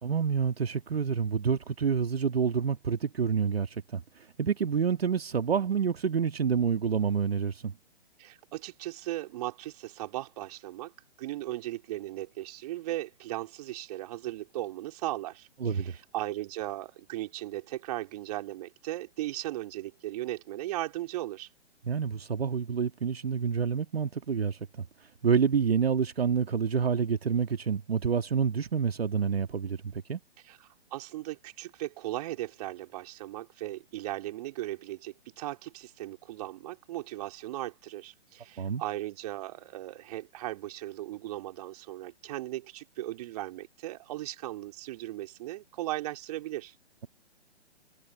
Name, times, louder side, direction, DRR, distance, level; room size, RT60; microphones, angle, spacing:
voice 1, 0.0-7.7 15.6-16.0 21.8-30.2 38.6-38.8, right 6 dB, 60° right, 2.1 m, -28 dB
voice 2, 8.2-10.9 11.2-21.5 30.4-46.7, right 15 dB, 35° right, 4.5 m, -37 dB
figure-of-eight pair, 130°, 34 cm